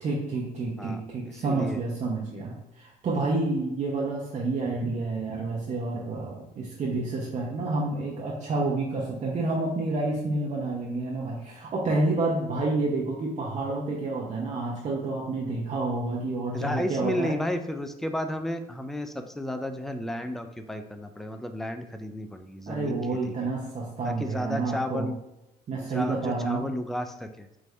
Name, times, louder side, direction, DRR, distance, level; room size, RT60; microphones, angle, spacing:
voice 1, 0.0-17.3 22.7-25.1 25.7-26.7, right 3 dB, 45° right, -3 dB, 0.8 m, -29 dB
voice 2, 0.8-1.8 16.5-23.0 23.3-23.4 24.0-25.2 25.8-27.5, left 1 dB, ahead, 7 dB, 0.3 m, -33 dB
4.7 x 2.6 x 3.3 m, 0.90 s
cardioid pair, 110°, 17 cm